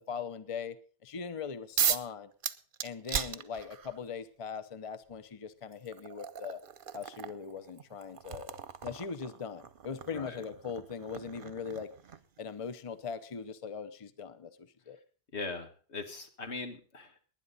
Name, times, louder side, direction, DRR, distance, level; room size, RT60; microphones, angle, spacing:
voice 1, 0.1-0.8 1.0-2.3 2.8-6.6 6.9-11.9 12.4-15.0, left 6 dB, 35° left, 13 dB, 0.8 m, -40 dB
sound 1, 1.8-2.1 2.4-4.0 5.1-5.2 5.7-12.4, right 8 dB, 55° right, 0.9 m, -37 dB
voice 2, 15.3-17.1, left 3 dB, 90° left, 6 dB, 2.0 m, -40 dB
19.5 x 10.0 x 4.1 m, 0.40 s
omnidirectional pair, 1.1 m